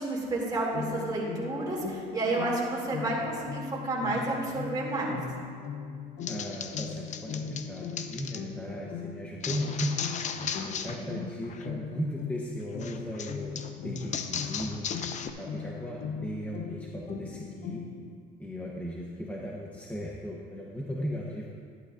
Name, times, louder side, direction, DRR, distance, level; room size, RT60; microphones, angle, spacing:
voice 1, 0.0-5.2 10.6-10.7 11.0-11.1, right 2 dB, 25° right, -5 dB, 2.7 m, -31 dB
sound 1, 0.7-18.2, left 5 dB, 80° left, 0.9 m, -39 dB
sound 2, 6.2-8.4 9.4-11.0 11.3-11.7 12.8-15.3, left 7 dB, 45° left, 0.6 m, -36 dB
voice 2, 6.3-10.0 10.8-14.9 15.4-17.8 18.4-21.5, equal, 10° left, -3 dB, 0.9 m, -36 dB
11.0 x 11.0 x 2.6 m, 2.1 s
cardioid pair, 110°, 17 cm